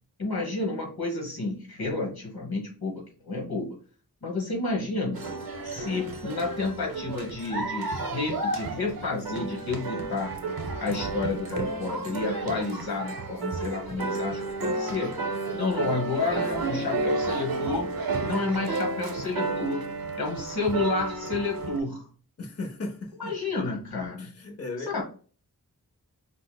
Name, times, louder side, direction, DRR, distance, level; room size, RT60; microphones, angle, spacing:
voice 1, 0.2-3.7 4.2-5.2 5.6-10.3 10.8-15.2 15.5-17.9 18.2-19.9 20.2-22.1 23.2-24.3 24.9-25.0, left 3 dB, 85° left, 0 dB, 1.2 m, -30 dB
sound 1, 5.1-21.8, right 3 dB, 75° right, 0.7 m, -32 dB
voice 2, 22.4-23.3 24.2-25.0, left 2 dB, 40° left, 2 dB, 0.6 m, -36 dB
5.4 x 2.0 x 2.2 m, 0.39 s
wide cardioid pair, 60°, 36 cm